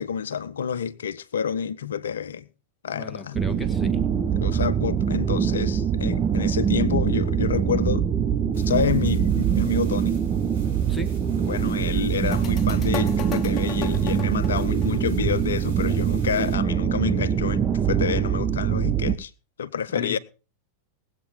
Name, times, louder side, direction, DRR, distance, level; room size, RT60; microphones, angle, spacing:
voice 1, 0.0-2.5 2.8-3.4 4.4-8.1 8.6-10.2 11.4-19.3 19.6-20.2, left 7 dB, 65° left, 0.7 m, -28 dB
voice 2, 2.9-4.1 10.9-11.2 19.9-20.2, left 4 dB, 10° left, 1.6 m, -35 dB
sound 1, 3.3-19.2, right 8 dB, 25° right, 0.9 m, -23 dB
sound 2, 8.5-16.5, right 3 dB, 80° right, 6.7 m, -50 dB
sound 3, 12.2-15.7, left 7 dB, 30° left, 1.0 m, -37 dB
19.0 x 8.3 x 4.3 m
figure-of-eight pair, 90°, 0 cm